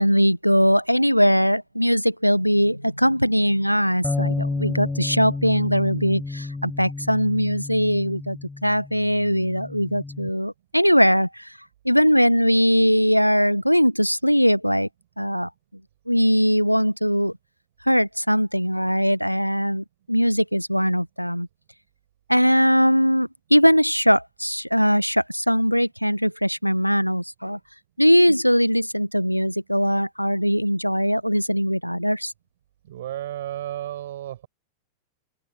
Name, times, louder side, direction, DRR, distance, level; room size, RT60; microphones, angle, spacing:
voice 1, 0.0-11.5 11.8-14.9 15.2-15.5 16.1-17.3 17.8-21.5 22.3-27.6 28.0-32.3, equal, 90° left, 1.2 m, -20 dB
sound 1, 4.0-10.3, left 3 dB, 10° left, 6.2 m, -31 dB
voice 2, 32.8-34.5, right 13 dB, 60° right, 6.1 m, -33 dB
open air
figure-of-eight pair, 90°, 0 cm